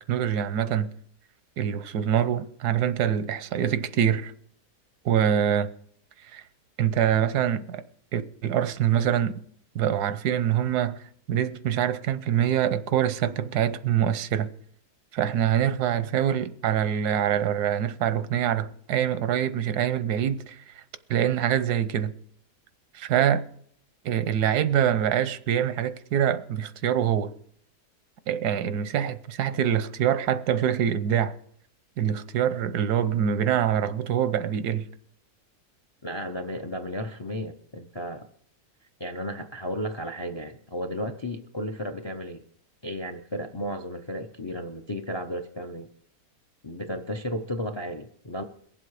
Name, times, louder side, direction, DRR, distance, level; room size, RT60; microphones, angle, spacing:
voice 1, 0.1-0.9 1.6-4.3 5.0-5.7 6.3-6.4 6.8-7.8 8.1-9.4 9.7-11.0 11.3-14.5 15.1-20.8 21.1-22.1 22.9-23.4 24.0-27.3 28.3-31.3 32.0-34.9, right 9 dB, 85° right, 1.3 m, -25 dB
voice 2, 36.0-38.2 39.0-42.4 42.8-45.9 46.6-48.4, equal, 40° left, 0.4 m, -34 dB
22.0 x 7.7 x 4.8 m
omnidirectional pair, 1.6 m